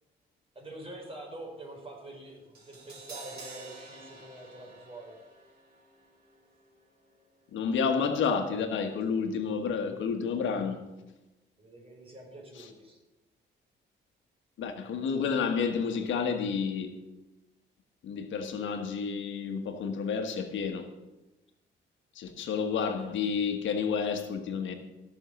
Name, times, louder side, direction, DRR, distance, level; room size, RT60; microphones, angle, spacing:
voice 1, 0.5-5.2 11.6-13.0, right 2 dB, 30° right, 4.8 m, -46 dB
Crash cymbal, 2.5-8.7 9.0-9.1, right 3 dB, 50° right, 3.8 m, -50 dB
voice 2, 7.5-10.9 12.6-12.7 14.6-17.0 18.0-20.9 22.1-24.7, left 6 dB, 75° left, 1.4 m, -30 dB
14.5 x 6.5 x 6.4 m
cardioid pair, 90°, 20 cm